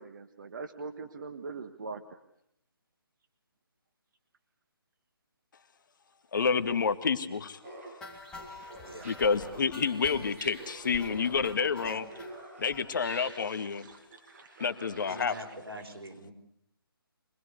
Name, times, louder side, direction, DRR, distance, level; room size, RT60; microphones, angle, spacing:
voice 1, 0.0-2.2 13.0-14.6 15.1-15.4 15.8-16.0, right 4 dB, 55° right, 8 dB, 1.5 m, -44 dB
voice 2, 6.3-7.6 9.0-12.1 12.6-13.9 14.6-15.3, left 5 dB, 55° left, 10 dB, 1.9 m, -29 dB
Laughter, 7.6-15.6, right 1 dB, 35° right, 6.4 m, -48 dB
sound 1, 8.0-12.3 12.7-12.8 13.2-13.3 13.5-13.6 13.9-14.0, left 2 dB, 5° left, 3.5 m, -48 dB
voice 3, 15.1-16.3, right 1 dB, 85° right, 2 dB, 5.1 m, -43 dB
25.5 x 20.0 x 8.3 m, 0.74 s
figure-of-eight pair, 150°, 13 cm